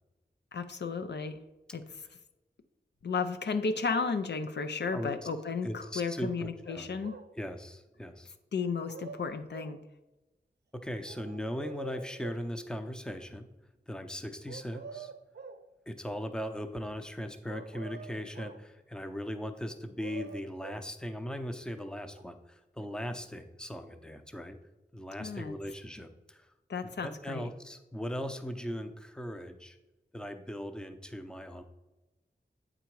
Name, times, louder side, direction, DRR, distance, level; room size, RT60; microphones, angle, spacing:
voice 1, 0.5-1.4 1.7-1.8 3.0-7.2 8.5-9.8 25.2-25.5 26.7-27.5, left 5 dB, 85° left, 8 dB, 0.5 m, -33 dB
voice 2, 5.6-6.9 7.4-8.3 10.7-13.5 13.9-15.1 15.9-24.6 24.9-26.5 27.0-29.8 30.1-31.6, equal, 5° left, 7 dB, 0.6 m, -39 dB
sound 1, 6.7-7.3 8.6-9.8 11.1-12.5 14.5-15.7 17.5-18.7 19.7-20.9 22.2-22.3, right 4 dB, 70° right, 0.5 m, -46 dB
8.1 x 3.8 x 4.6 m, 1.1 s
wide cardioid pair, 65°, 18 cm